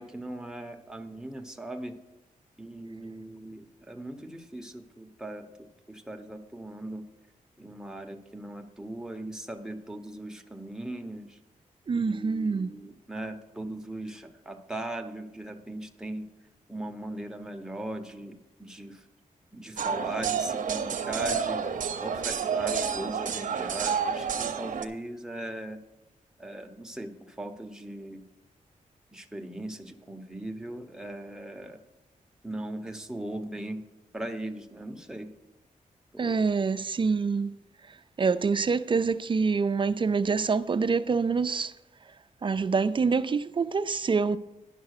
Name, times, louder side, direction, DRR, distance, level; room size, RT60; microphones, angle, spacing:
voice 1, 0.0-2.0 2.6-7.0 7.6-11.4 11.9-16.3 16.7-19.1 19.5-21.6 22.0-25.8 26.4-28.2 29.1-31.8 32.4-33.8 34.1-35.3 36.1-36.5, right 1 dB, 5° right, 0.9 m, -39 dB
voice 2, 11.9-12.7 36.2-37.5 38.2-41.7 42.4-44.4, right 5 dB, 35° right, 0.4 m, -26 dB
sound 1, 19.8-24.8, right 6 dB, 70° right, 0.7 m, -29 dB
10.5 x 6.0 x 6.5 m
wide cardioid pair, 90°, 14 cm